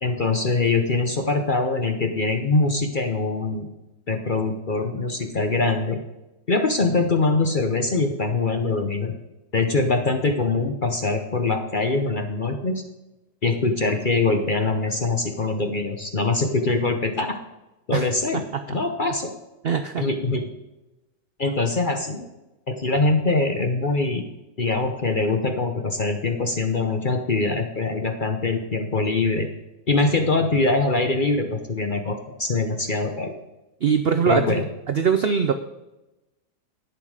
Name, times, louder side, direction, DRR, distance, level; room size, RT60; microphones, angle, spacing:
voice 1, 0.0-3.7 4.1-6.0 6.5-9.1 9.5-12.8 13.4-17.4 17.9-19.3 20.0-20.5 21.4-22.3 22.7-24.3 24.6-29.5 29.9-33.3 34.2-34.7, left 3 dB, 40° left, 5 dB, 0.8 m, -23 dB
voice 2, 19.6-20.0 33.8-35.5, right 6 dB, 70° right, 7 dB, 0.5 m, -22 dB
11.0 x 8.1 x 4.9 m, 0.99 s
omnidirectional pair, 1.8 m